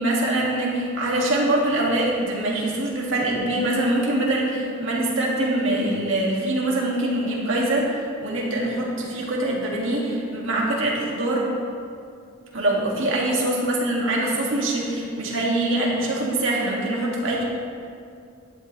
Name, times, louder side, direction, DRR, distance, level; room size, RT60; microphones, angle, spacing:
voice 1, 0.0-11.5 12.5-17.4, right 1 dB, 70° right, -4 dB, 2.4 m, -24 dB
12.0 x 11.0 x 3.4 m, 2.4 s
head